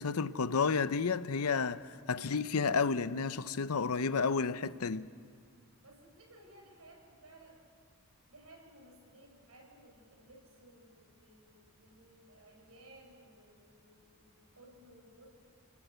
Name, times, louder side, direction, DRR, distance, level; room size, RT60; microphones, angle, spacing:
voice 1, 0.0-5.1, left 5 dB, 80° left, 0.7 m, -31 dB
voice 2, 5.8-7.6 8.3-15.3, right 1 dB, 75° right, 6.7 m, -58 dB
29.0 x 21.0 x 8.1 m
head